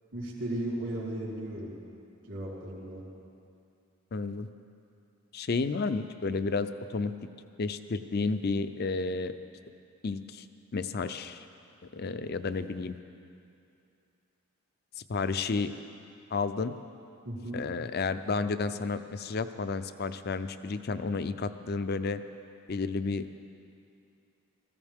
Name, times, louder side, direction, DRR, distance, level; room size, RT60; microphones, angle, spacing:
voice 1, 0.1-1.8 2.3-3.1 17.2-17.6, right 1 dB, 75° right, -6 dB, 3.9 m, -35 dB
voice 2, 4.1-4.5 5.3-7.1 7.6-9.3 10.0-10.4 10.7-11.4 11.9-12.9 15.1-15.7 16.3-16.7 17.5-22.2 22.7-23.3, left 4 dB, 50° left, 11 dB, 0.5 m, -31 dB
19.5 x 15.0 x 3.6 m, 2.6 s
head